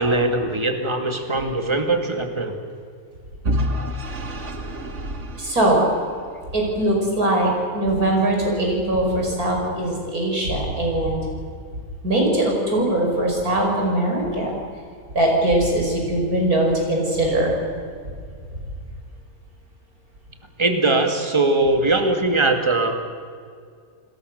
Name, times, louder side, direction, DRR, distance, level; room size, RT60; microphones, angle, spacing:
voice 1, 0.0-2.6 20.6-22.9, right 2 dB, 20° right, 5 dB, 2.3 m, -21 dB
Vehicle / Engine, 3.4-6.5, equal, 55° right, 2.1 m, -28 dB
voice 2, 5.4-5.9 6.5-11.2 12.0-14.5 15.1-17.6, right 1 dB, 90° right, 0 dB, 6.6 m, -21 dB
29.5 x 21.0 x 6.7 m, 2.1 s
omnidirectional pair, 1.5 m